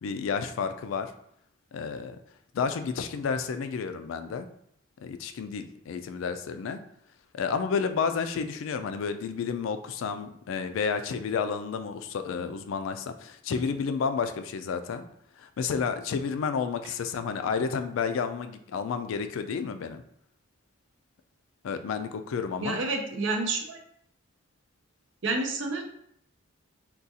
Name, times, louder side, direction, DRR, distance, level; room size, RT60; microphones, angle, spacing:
voice 1, 0.0-1.1 1.7-2.2 2.5-4.5 5.0-6.8 7.3-15.1 15.4-20.0 21.6-22.8, left 5 dB, 80° left, 9 dB, 0.3 m, -31 dB
voice 2, 22.6-23.8 25.2-25.8, right 3 dB, 70° right, 3 dB, 0.5 m, -29 dB
3.7 x 2.3 x 2.7 m, 0.71 s
head